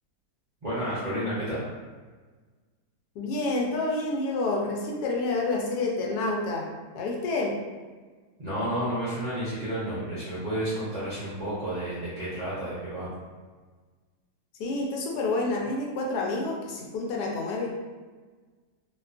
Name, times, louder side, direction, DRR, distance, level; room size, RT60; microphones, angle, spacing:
voice 1, 0.6-1.7 8.4-13.1, right 1 dB, 45° right, -11 dB, 0.5 m, -31 dB
voice 2, 3.2-6.7 6.9-7.5 14.6-17.7, left 2 dB, 80° left, -1 dB, 1.1 m, -28 dB
2.8 x 2.2 x 2.4 m, 1.4 s
omnidirectional pair, 1.7 m